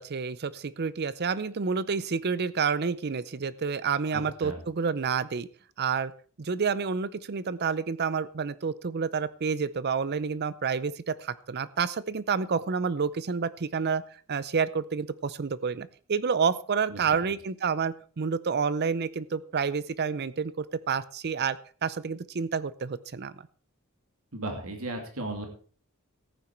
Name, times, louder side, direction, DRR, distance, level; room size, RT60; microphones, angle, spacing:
voice 1, 0.0-5.5 5.8-6.1 6.4-14.0 14.3-23.3, right 5 dB, 50° right, 18 dB, 0.6 m, -29 dB
voice 2, 4.1-4.6 16.9-17.0 24.3-25.5, right 2 dB, 75° right, 4 dB, 2.6 m, -35 dB
14.5 x 9.0 x 4.5 m, 0.42 s
head